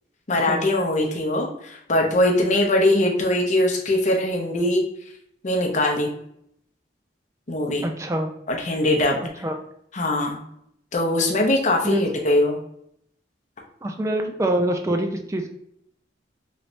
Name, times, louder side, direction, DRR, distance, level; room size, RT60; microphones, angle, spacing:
voice 1, 0.3-4.8 5.4-6.1 7.5-7.9 8.5-9.2 9.9-10.4 10.9-12.6, left 1 dB, 40° left, 2 dB, 0.6 m, -21 dB
voice 2, 7.8-8.3 9.2-9.6 11.8-12.0 13.8-15.5, right 1 dB, 15° right, 4 dB, 0.3 m, -25 dB
3.1 x 3.1 x 2.5 m, 0.72 s
head